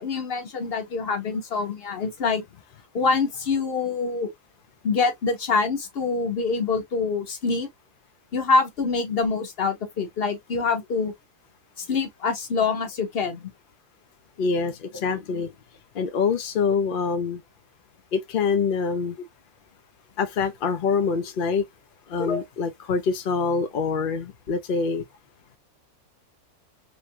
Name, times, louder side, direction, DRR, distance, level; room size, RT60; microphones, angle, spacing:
voice 1, 0.0-2.4 2.9-4.3 4.8-7.7 8.3-11.1 11.8-13.5 22.2-22.4, left 4 dB, 45° left, 1.0 m, -25 dB
voice 2, 14.4-15.5 15.9-17.4 18.1-19.2 20.2-21.6 22.1-25.0, left 5 dB, 70° left, 0.5 m, -25 dB
3.4 x 2.9 x 2.6 m
omnidirectional pair, 1.6 m